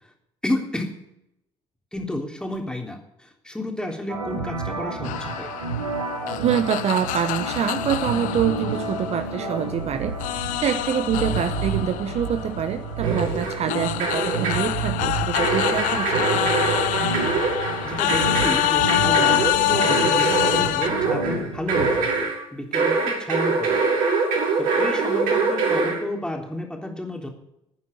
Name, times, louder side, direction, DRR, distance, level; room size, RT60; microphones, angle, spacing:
voice 1, 0.4-0.9 1.9-5.5 17.8-23.8 24.6-27.3, left 1 dB, 5° left, 2 dB, 3.4 m, -31 dB
sound 1, 4.1-22.0, right 4 dB, 85° right, 4.0 m, -30 dB
sound 2, 5.0-9.8 10.2-20.9, left 15 dB, 60° left, 0.7 m, -26 dB
voice 2, 6.4-16.3, right 8 dB, 45° right, 9 dB, 1.0 m, -26 dB
sound 3, 13.0-13.7 14.0-14.7 15.3-22.4 22.7-26.0, right 4 dB, 60° right, 6.0 m, -24 dB
12.5 x 9.4 x 9.7 m, 0.84 s
figure-of-eight pair, 55°, 15 cm